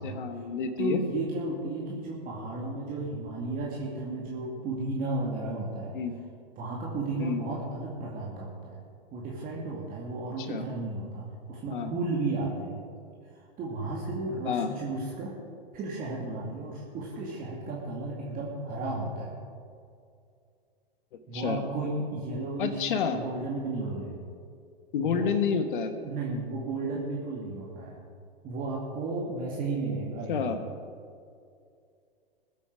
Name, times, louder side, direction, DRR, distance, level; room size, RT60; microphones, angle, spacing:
voice 1, 0.0-1.0 5.9-6.1 7.2-7.4 10.4-10.7 11.7-11.9 14.4-14.7 21.3-21.6 22.6-23.2 24.9-25.9 30.3-30.6, left 6 dB, 60° left, 9 dB, 1.3 m, -29 dB
voice 2, 0.8-5.9 6.6-8.8 9.1-12.8 13.3-15.3 15.7-19.4 21.3-24.3 25.0-25.3 26.0-28.0 28.4-30.6, right 2 dB, 30° right, -4 dB, 2.4 m, -33 dB
21.0 x 8.5 x 4.8 m, 2.3 s
figure-of-eight pair, 105°, 29 cm